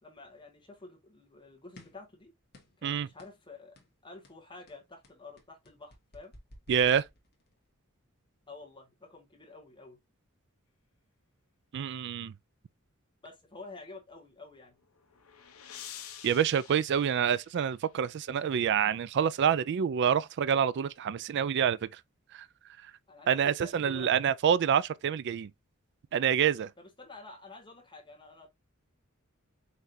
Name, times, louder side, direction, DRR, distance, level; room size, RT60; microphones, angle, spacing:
voice 1, 0.0-2.3 2.8-3.7 4.0-6.3 8.5-10.0 13.2-14.7 23.1-24.1 26.8-28.5, left 3 dB, 20° left, 1.6 m, -49 dB
sound 1, 1.8-2.1 2.5-2.9 3.2-3.4 3.8-4.0 4.2-7.6, left 1 dB, 50° left, 1.5 m, -55 dB
voice 2, 6.7-7.0 11.7-12.3 16.2-22.0 22.3-22.4 23.3-25.5 26.1-26.7, right 8 dB, 55° right, 0.3 m, -27 dB
sound 2, 14.6-18.0, left 10 dB, 85° left, 0.9 m, -49 dB
5.7 x 3.2 x 2.7 m
head